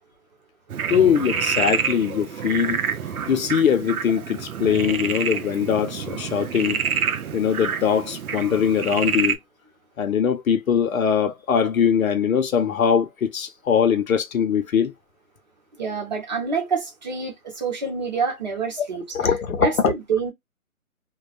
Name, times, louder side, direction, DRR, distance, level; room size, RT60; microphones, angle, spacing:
Frog, 0.7-9.4, right 7 dB, 85° right, 0.7 m, -28 dB
voice 1, 0.9-2.8 3.3-6.8 7.3-9.4 10.0-14.9 19.1-19.9, left 7 dB, 70° left, 0.7 m, -21 dB
voice 2, 15.8-19.1 19.6-20.3, right 5 dB, 30° right, 0.9 m, -27 dB
2.2 x 2.2 x 2.4 m
hypercardioid pair, 170°, 43 cm